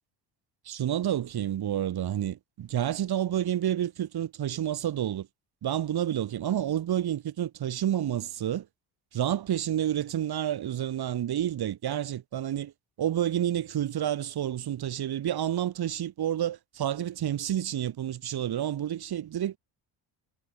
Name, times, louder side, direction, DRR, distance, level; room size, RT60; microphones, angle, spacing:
voice 1, 0.6-5.3 5.6-8.7 9.1-12.7 13.0-19.6, right 11 dB, 60° right, 7.8 m, -29 dB
cardioid pair, 125°, 43 cm